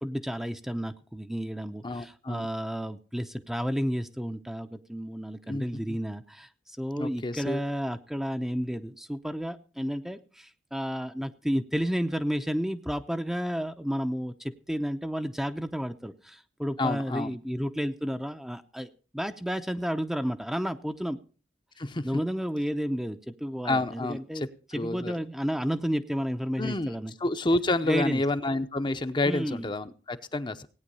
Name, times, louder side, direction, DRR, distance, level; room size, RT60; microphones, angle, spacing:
voice 1, 0.0-21.2 22.0-24.5 24.7-27.1 27.8-28.2 29.2-29.7, equal, 5° right, 7 dB, 0.7 m, -32 dB
voice 2, 1.8-2.5 5.5-6.0 7.0-7.6 16.8-17.4 21.8-22.1 23.6-25.1 26.6-26.9 27.2-30.7, left 2 dB, 25° left, 9 dB, 0.8 m, -29 dB
17.5 x 9.4 x 5.4 m, 0.38 s
head